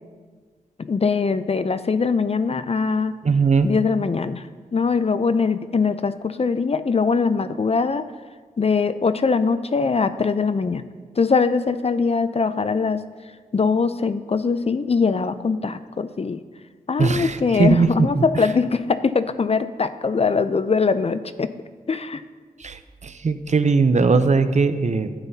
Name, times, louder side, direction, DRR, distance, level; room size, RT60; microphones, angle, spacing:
voice 1, 0.8-3.2 3.6-4.4 4.7-8.1 8.6-10.8 11.2-13.0 13.5-16.4 16.9-21.5 21.9-22.2, left 4 dB, 45° left, 12 dB, 0.5 m, -22 dB
voice 2, 3.2-3.7 17.0-18.5 22.6-25.1, right 4 dB, 50° right, 10 dB, 0.6 m, -19 dB
12.0 x 8.8 x 2.8 m, 1.5 s
cardioid pair, 55°, 15 cm